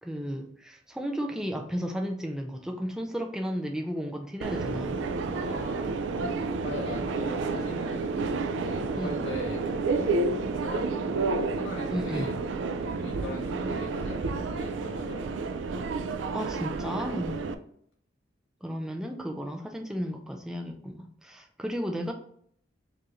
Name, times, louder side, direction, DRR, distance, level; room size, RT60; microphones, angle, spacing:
voice 1, 0.0-5.0 6.9-7.0 8.9-9.2 11.9-12.3 16.3-17.4 18.6-22.1, equal, 5° right, 3 dB, 0.4 m, -34 dB
Subway metro underground, 4.4-17.5, right 3 dB, 75° right, 0.3 m, -30 dB
voice 2, 5.2-5.9 6.6-8.2 8.5-9.6 9.9-10.2 10.6-10.9 11.6-12.3 12.8-15.4, left 1 dB, 65° left, -2 dB, 1.4 m, -40 dB
4.7 x 2.5 x 3.0 m, 0.66 s
head